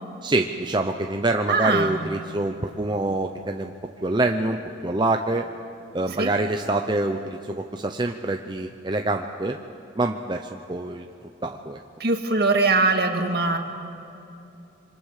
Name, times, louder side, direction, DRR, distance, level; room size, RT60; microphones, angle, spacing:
voice 1, 0.2-3.7 4.0-4.6 4.8-5.4 5.9-9.6 10.0-11.1 11.4-11.8, right 2 dB, 25° right, 4 dB, 0.7 m, -25 dB
voice 2, 1.5-2.0 6.2-6.3 12.0-13.6, right 3 dB, 55° right, 4 dB, 2.1 m, -21 dB
26.0 x 24.5 x 6.7 m, 2.8 s
head